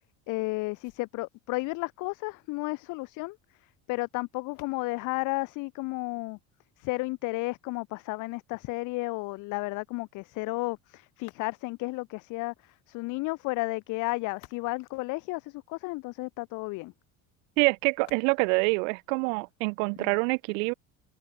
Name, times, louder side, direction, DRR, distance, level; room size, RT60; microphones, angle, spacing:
voice 1, 0.3-3.4 3.9-6.4 6.8-16.9 20.0-20.1, left 23 dB, 55° left, 0.5 m, -33 dB
sound 1, 0.7-6.7 11.1-12.0 14.0-15.9 17.9-19.9, left 26 dB, 75° left, 6.6 m, -61 dB
voice 2, 17.6-20.7, right 35 dB, 90° right, 0.5 m, -26 dB
cardioid pair, 125°, 37 cm